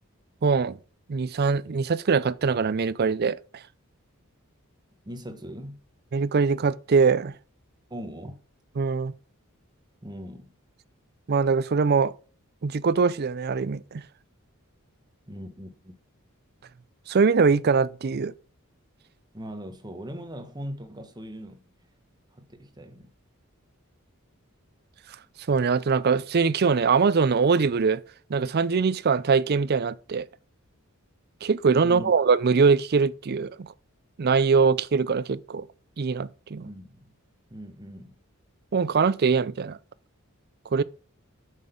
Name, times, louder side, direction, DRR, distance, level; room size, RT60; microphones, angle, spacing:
voice 1, 0.4-0.8 1.1-3.6 6.1-7.3 8.8-9.1 11.3-12.1 12.6-14.0 17.1-18.3 25.5-28.0 28.3-30.3 31.4-33.7 34.2-35.7 36.0-36.7 38.7-39.8 40.7-40.8, right 5 dB, 45° right, 0.5 m, -22 dB
voice 2, 5.0-5.8 7.9-8.4 10.0-10.5 15.3-16.0 19.3-21.6 22.4-23.1 31.8-32.1 36.5-37.0 37.5-38.2, equal, 20° right, 1.4 m, -40 dB
8.5 x 6.5 x 5.3 m
head